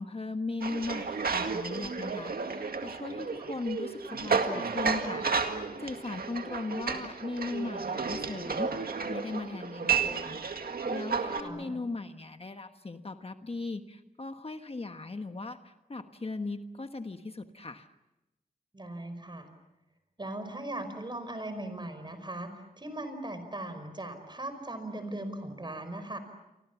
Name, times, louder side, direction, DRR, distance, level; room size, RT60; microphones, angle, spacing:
voice 1, 0.0-17.9, left 3 dB, 40° left, 7 dB, 1.3 m, -38 dB
sound 1, 0.6-11.4, right 5 dB, 85° right, 2.0 m, -32 dB
voice 2, 11.4-11.8 18.7-19.5 20.2-26.2, right 1 dB, 30° right, 9 dB, 5.2 m, -39 dB
29.5 x 25.0 x 7.2 m, 0.96 s
wide cardioid pair, 90°, 15 cm